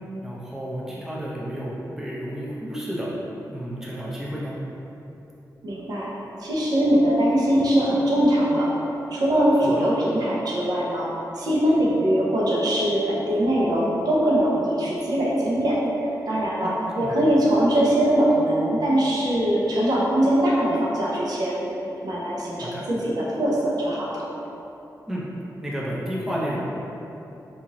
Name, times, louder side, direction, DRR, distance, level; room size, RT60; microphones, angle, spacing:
voice 1, 0.2-3.1 3.5-4.5 9.6-9.8 16.6-16.7 17.0-17.1 22.6-22.8 25.1-25.2 25.6-26.6, equal, 5° right, -6 dB, 0.5 m, -31 dB
voice 2, 5.6-6.1 6.4-8.7 9.1-11.1 11.3-15.8 16.3-21.7 22.0-24.2, right 1 dB, 70° right, -5 dB, 0.7 m, -22 dB
3.9 x 2.5 x 2.9 m, 2.9 s
wide cardioid pair, 140°, 7 cm